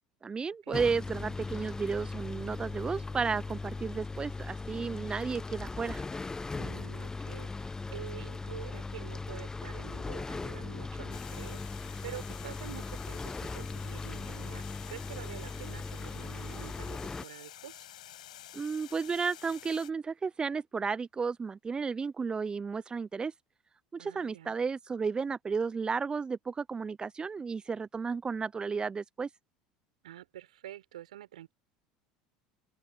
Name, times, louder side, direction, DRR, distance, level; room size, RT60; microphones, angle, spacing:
voice 1, 0.2-6.0 18.5-23.3 23.9-29.3, right 5 dB, 20° right, 0.7 m, -33 dB
sound 1, 0.7-17.2, left 3 dB, 15° left, 1.3 m, -39 dB
voice 2, 6.6-17.8 24.0-24.6 30.0-31.5, right 13 dB, 75° right, 6.1 m, -47 dB
Water, 11.1-19.9, left 13 dB, 75° left, 7.9 m, -50 dB
open air
hypercardioid pair, 75°, 4 cm